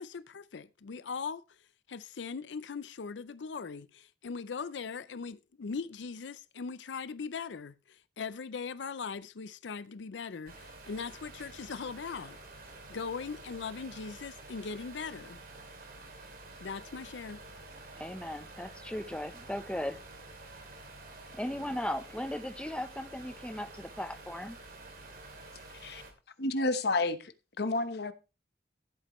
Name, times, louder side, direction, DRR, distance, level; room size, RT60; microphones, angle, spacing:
voice 1, 0.0-1.4 1.9-12.6 12.9-15.4 16.6-17.4, left 5 dB, 85° left, 0.5 m, -40 dB
sound 1, 10.5-26.1, right 2 dB, 55° right, 2.6 m, -49 dB
voice 2, 18.0-20.0 21.3-24.6, left 1 dB, 5° left, 0.8 m, -37 dB
voice 3, 26.4-27.3 27.6-28.1, left 2 dB, 65° left, 1.0 m, -30 dB
15.0 x 8.2 x 3.1 m
head